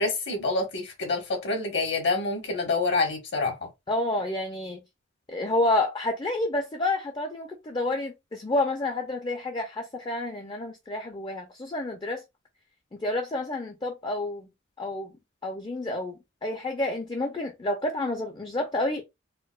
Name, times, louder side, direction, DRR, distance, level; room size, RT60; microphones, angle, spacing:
voice 1, 0.0-3.5, left 3 dB, 60° left, 1.2 m, -27 dB
voice 2, 3.9-4.8 5.3-12.2 12.9-14.5 14.8-15.1 15.4-19.0, left 2 dB, 25° left, 0.4 m, -29 dB
4.3 x 2.1 x 2.2 m
head